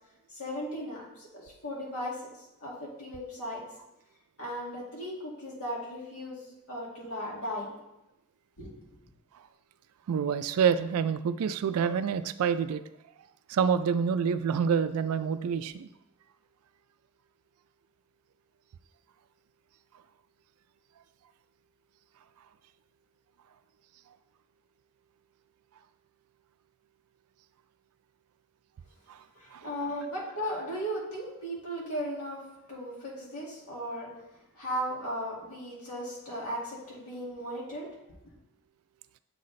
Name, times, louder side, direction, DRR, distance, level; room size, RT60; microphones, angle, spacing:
voice 1, 0.3-2.3 2.6-3.6 4.4-7.7 8.6-8.8 29.4-32.4 32.7-34.1 34.5-37.9 38.2-38.3, equal, 90° left, -4 dB, 2.0 m, -36 dB
voice 2, 10.1-12.8 13.5-15.9 29.1-29.2 29.5-29.7, right 7 dB, 80° right, 12 dB, 0.3 m, -27 dB
7.5 x 4.0 x 3.2 m, 0.90 s
head